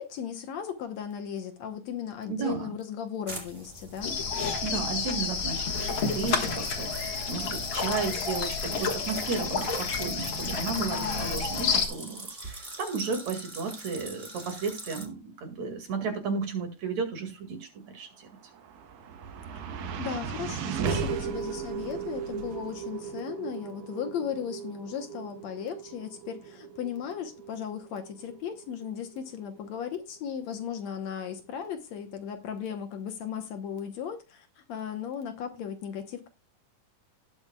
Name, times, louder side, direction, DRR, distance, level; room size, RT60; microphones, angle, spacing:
voice 1, 0.0-4.2 10.7-11.3 19.6-19.7 20.0-36.3, left 8 dB, 65° left, 2.1 m, -36 dB
voice 2, 2.3-2.8 4.6-18.3, right 5 dB, 60° right, 3.3 m, -33 dB
sound 1, 3.3-4.9 5.4-15.1, right 2 dB, 20° right, 2.3 m, -44 dB
sound 2, 4.0-11.9, left 5 dB, 45° left, 2.0 m, -30 dB
sound 3, 18.3-30.6, right 6 dB, 75° right, 2.7 m, -37 dB
19.0 x 7.1 x 2.3 m
omnidirectional pair, 3.7 m